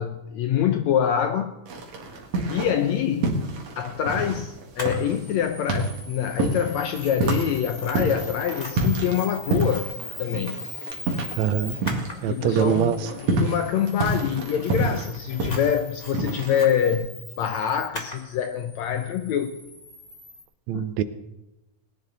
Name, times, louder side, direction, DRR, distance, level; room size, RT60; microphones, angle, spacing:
voice 1, 0.0-1.5 2.5-3.4 3.8-9.9 10.2-10.6 12.3-17.1 17.4-19.6 20.7-20.8, left 9 dB, 75° left, 1.7 m, -25 dB
sound 1, 1.7-2.9 3.2-12.2 12.5-16.9, right 2 dB, 55° right, 2.8 m, -28 dB
Camera, 4.7-20.4, left 2 dB, 25° left, 0.8 m, -40 dB
voice 2, 11.4-11.8 12.2-13.1 20.7-21.0, right 9 dB, 75° right, 1.8 m, -23 dB
19.5 x 10.5 x 4.0 m
omnidirectional pair, 3.8 m